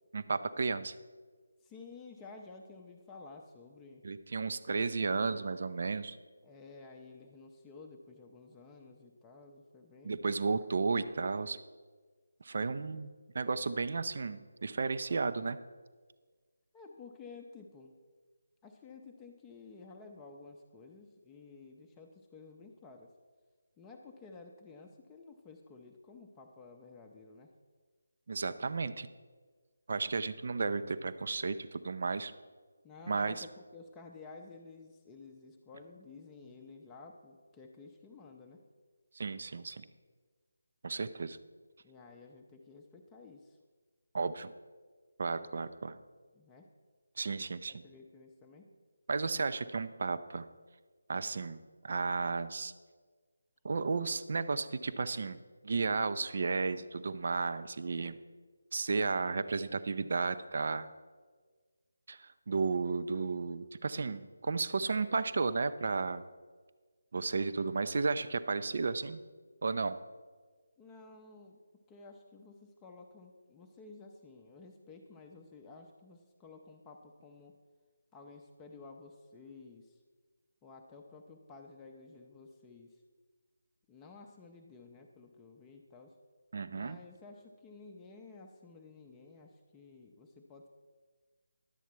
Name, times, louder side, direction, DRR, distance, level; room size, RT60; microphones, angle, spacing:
voice 1, 0.1-0.9 4.0-6.2 10.0-11.6 12.4-15.6 28.3-29.1 29.9-32.3 33.1-33.5 39.2-39.9 40.8-41.4 44.1-44.5 45.2-46.0 47.2-47.8 49.1-50.5 51.1-52.7 53.6-58.1 58.7-60.9 62.1-66.3 67.1-69.2 69.6-70.0 86.5-87.0, right 4 dB, 50° right, 12 dB, 0.5 m, -33 dB
voice 2, 1.6-4.0 6.4-10.7 16.7-17.9 18.6-23.1 23.8-27.5 32.8-38.6 41.8-43.6 46.3-46.7 47.7-48.7 70.8-71.6 71.9-77.6 78.1-80.0 80.6-83.0 83.9-86.1 86.7-90.7, left 4 dB, 10° left, 2 dB, 0.6 m, -53 dB
11.5 x 8.1 x 4.5 m, 1.5 s
figure-of-eight pair, 155°, 0 cm